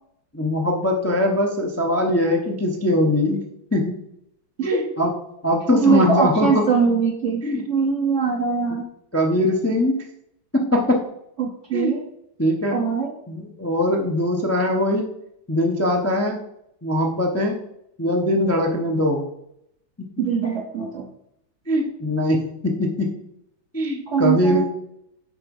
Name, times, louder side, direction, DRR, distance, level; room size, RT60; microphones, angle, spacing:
voice 1, 0.3-3.4 3.7-4.0 4.6-5.1 5.4-6.7 7.4-7.6 8.7-8.8 9.1-9.9 10.5-11.0 11.7-11.9 12.4-12.8 13.3-15.1 15.5-16.4 16.8-17.6 18.0-19.3 21.7-23.1 23.7-24.7, left 1 dB, 15° left, 0 dB, 0.5 m, -21 dB
voice 2, 5.8-8.9 11.4-12.0 12.7-13.1 20.2-21.1 24.1-24.7, right 5 dB, 55° right, 2 dB, 0.9 m, -22 dB
9.8 x 4.3 x 5.4 m, 0.77 s
omnidirectional pair, 2.1 m